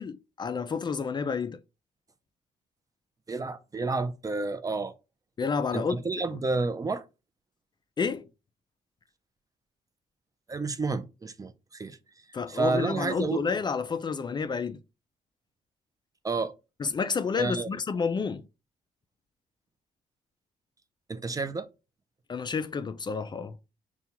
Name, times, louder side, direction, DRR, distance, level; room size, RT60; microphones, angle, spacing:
voice 1, 0.0-1.6 5.4-6.2 8.0-8.3 12.3-14.8 16.8-18.4 22.3-23.6, left 5 dB, 30° left, 0.4 m, -30 dB
voice 2, 3.3-5.0 5.7-7.0 10.5-12.0 12.5-13.4 16.2-16.5 17.4-17.7 21.1-21.7, right 3 dB, 25° right, 0.5 m, -30 dB
5.5 x 2.2 x 2.8 m
supercardioid pair, 70°, 14 cm